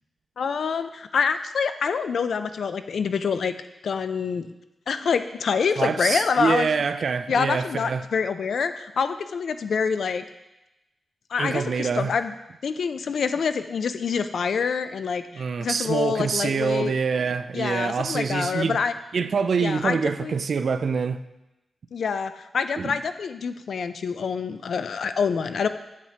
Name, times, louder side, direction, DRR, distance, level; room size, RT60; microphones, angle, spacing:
voice 1, 0.4-3.5 3.8-4.5 4.9-6.7 7.3-10.2 11.3-12.3 12.6-16.9 17.5-18.9 19.6-20.3 21.9-25.7, left 6 dB, 70° left, 0.4 m, -26 dB
voice 2, 5.8-8.0 11.4-12.1 15.3-18.8 19.1-21.2 22.8-22.9, right 5 dB, 55° right, 0.3 m, -25 dB
8.0 x 7.3 x 2.8 m
wide cardioid pair, 155°, 0 cm